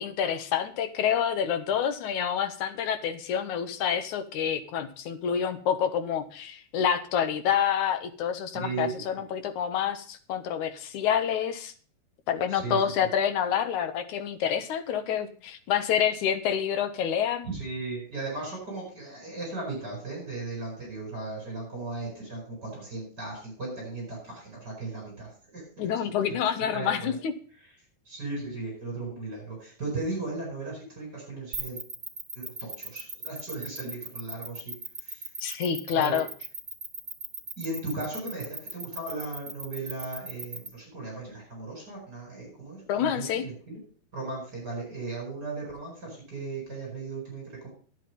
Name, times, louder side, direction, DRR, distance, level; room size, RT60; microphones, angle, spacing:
voice 1, 0.0-11.7 12.3-17.5 25.8-27.3 35.4-36.3 42.9-43.4, left 8 dB, 65° left, 9 dB, 2.4 m, -28 dB
voice 2, 8.6-8.9 12.5-12.9 17.4-25.9 26.3-26.4 26.7-27.2 27.5-27.7 28.0-31.8 32.4-34.7 35.0-35.3 35.9-36.2 37.6-43.8 44.1-47.7, right 3 dB, 25° right, -2 dB, 8.3 m, -36 dB
sound 1, 31.5-40.7, right 3 dB, 70° right, 0.4 m, -38 dB
10.5 x 10.0 x 5.4 m, 0.42 s
omnidirectional pair, 4.0 m